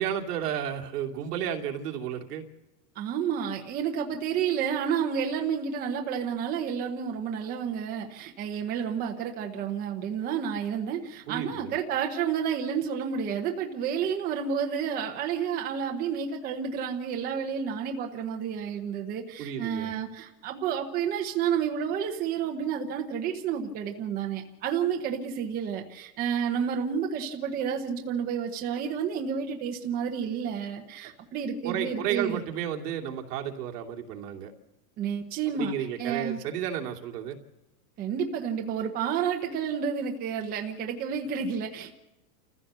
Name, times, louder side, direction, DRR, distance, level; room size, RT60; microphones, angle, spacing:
voice 1, 0.0-2.4 11.3-11.7 19.4-19.9 31.6-34.5 35.6-37.4, right 9 dB, 65° right, 1 dB, 2.6 m, -32 dB
voice 2, 2.9-32.4 35.0-35.7 36.0-36.4 38.0-41.9, right 7 dB, 20° right, 2 dB, 0.9 m, -30 dB
28.0 x 15.5 x 6.8 m, 0.99 s
supercardioid pair, 175°, 50 cm